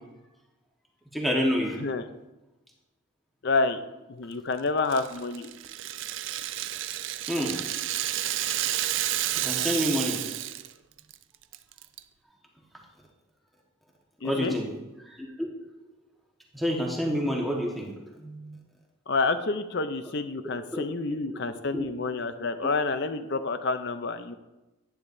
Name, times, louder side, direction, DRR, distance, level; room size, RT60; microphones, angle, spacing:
voice 1, 1.1-1.8 7.3-7.5 9.4-10.2 14.2-14.6 15.2-15.3 16.5-17.9 18.2-18.6 20.7-20.8 21.7-21.8, equal, ahead, -2 dB, 1.4 m, -27 dB
voice 2, 3.4-3.8 4.1-5.5 14.2-14.6 19.1-24.3, left 3 dB, 50° left, 10 dB, 0.6 m, -28 dB
Rattle (instrument), 4.9-10.7 11.0-11.1 11.5-12.0, right 13 dB, 60° right, 0.4 m, -30 dB
10.5 x 10.0 x 2.7 m, 1.0 s
head